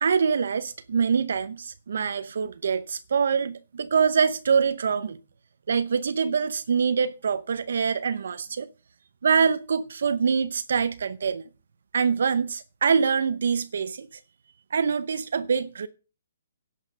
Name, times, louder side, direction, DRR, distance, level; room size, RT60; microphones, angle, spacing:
voice 1, 0.0-5.2 5.7-8.7 9.2-11.4 11.9-14.1 14.7-15.9, right 6 dB, 70° right, 0.7 m, -24 dB
11.0 x 6.4 x 6.5 m
hypercardioid pair, 160°, 0 cm